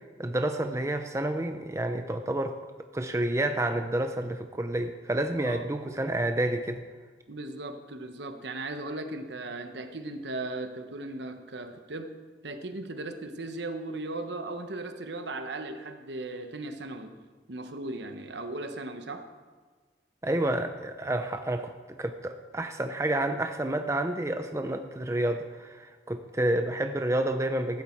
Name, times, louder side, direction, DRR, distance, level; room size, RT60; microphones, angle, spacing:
voice 1, 0.2-2.6 2.9-6.8 20.2-21.7 22.0-27.8, right 1 dB, 15° right, 6 dB, 0.5 m, -29 dB
voice 2, 7.3-12.1 12.4-17.2 17.5-19.3, right 2 dB, 65° right, 7 dB, 1.1 m, -37 dB
15.0 x 11.0 x 4.5 m, 1.5 s
head